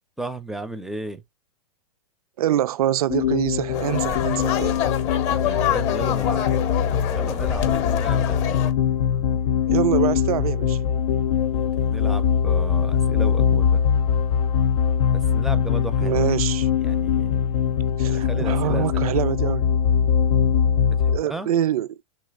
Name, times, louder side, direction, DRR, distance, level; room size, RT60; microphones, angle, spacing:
voice 1, 0.2-1.2 5.3-6.5 7.0-8.6 11.5-13.8 15.1-16.4 16.8-17.4 18.0-19.1 21.0-21.5, right 2 dB, ahead, 0.4 m, -35 dB
voice 2, 2.4-4.8 9.7-10.8 16.0-16.7 18.0-19.7 21.1-21.9, right 12 dB, 85° right, 0.4 m, -24 dB
sound 1, 3.1-21.2, left 8 dB, 85° left, 0.5 m, -22 dB
sound 2, 3.7-8.7, left 10 dB, 35° left, 0.7 m, -26 dB
3.2 x 2.8 x 3.4 m
hypercardioid pair, 135°, 18 cm